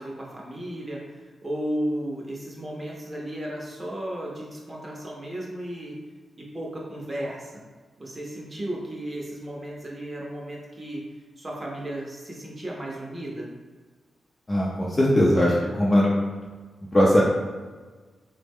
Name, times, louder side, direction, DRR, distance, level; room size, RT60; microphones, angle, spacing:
voice 1, 0.0-6.0 6.4-7.6 8.0-11.0 11.4-13.5, right 1 dB, 25° right, -3 dB, 0.6 m, -34 dB
voice 2, 14.5-16.2 16.9-17.2, left 1 dB, 20° left, -5 dB, 0.5 m, -20 dB
3.3 x 2.1 x 3.4 m, 1.4 s
cardioid pair, 95°, 0 cm